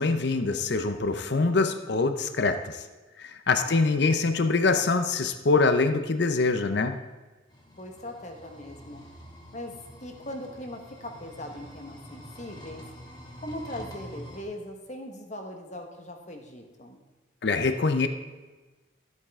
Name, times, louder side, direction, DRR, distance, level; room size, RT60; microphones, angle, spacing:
voice 1, 0.0-2.8 3.2-7.0 17.4-18.1, left 3 dB, 55° left, 8 dB, 0.6 m, -24 dB
voice 2, 3.5-4.0 7.7-9.0 9.5-9.7 10.0-12.8 13.4-17.0, left 1 dB, 35° left, 3 dB, 1.2 m, -40 dB
sound 1, 7.5-14.4, equal, 20° left, 1.3 m, -46 dB
13.5 x 8.1 x 3.6 m, 1.2 s
head